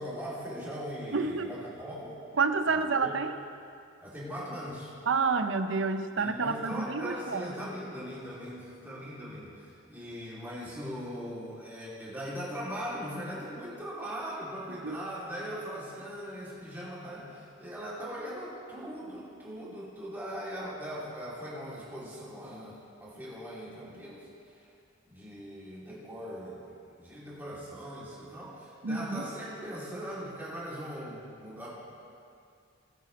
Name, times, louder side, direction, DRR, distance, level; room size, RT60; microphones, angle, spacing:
voice 1, 0.0-2.2 3.0-3.1 4.0-4.9 6.2-24.3 25.0-31.7, equal, 10° right, -8 dB, 2.7 m, -40 dB
voice 2, 1.1-1.6 2.3-3.4 5.1-7.7 14.8-15.0 28.8-29.3, right 4 dB, 65° right, 9 dB, 0.6 m, -29 dB
19.0 x 8.3 x 3.2 m, 2.4 s
head